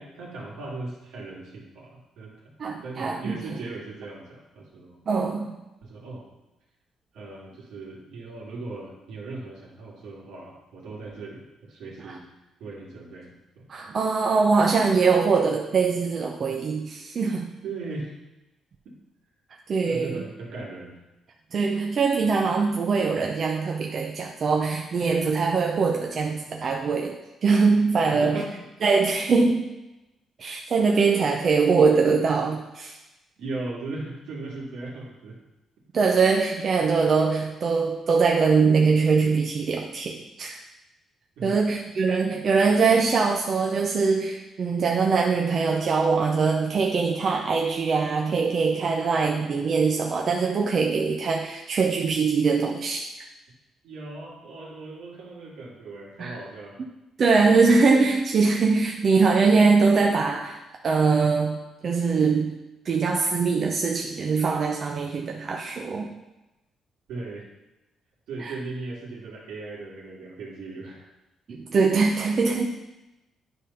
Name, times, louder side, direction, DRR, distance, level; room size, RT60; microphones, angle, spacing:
voice 1, 0.0-2.5 2.8-5.0 5.8-6.3 7.1-12.3 12.6-13.7 17.6-18.2 19.8-21.0 28.1-28.5 33.4-35.4 41.4-41.7 53.8-56.8 67.1-67.5 68.3-71.1, right 3 dB, 85° right, -3 dB, 2.3 m, -38 dB
voice 2, 2.6-3.6 5.1-5.6 12.1-12.2 13.7-17.5 19.7-20.2 21.5-28.4 28.8-29.7 30.4-33.0 35.9-40.6 41.4-53.1 56.2-56.4 57.2-62.6 62.8-66.1 68.4-68.5 71.5-72.7, right 4 dB, 50° right, 1 dB, 0.7 m, -22 dB
9.8 x 3.5 x 5.6 m, 0.99 s
cardioid pair, 90°, 0 cm